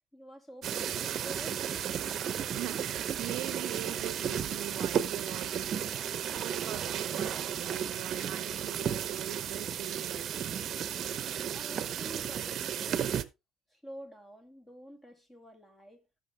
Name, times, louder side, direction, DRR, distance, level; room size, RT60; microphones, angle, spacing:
voice 1, 0.1-1.7 11.5-13.1 13.7-16.0, right 1 dB, 10° left, 2.1 m, -48 dB
sound 1, 0.6-13.2, right 9 dB, 50° right, 0.8 m, -34 dB
voice 2, 2.5-10.7, right 15 dB, 75° right, 0.6 m, -42 dB
14.0 x 6.7 x 3.3 m
cardioid pair, 115°, 0 cm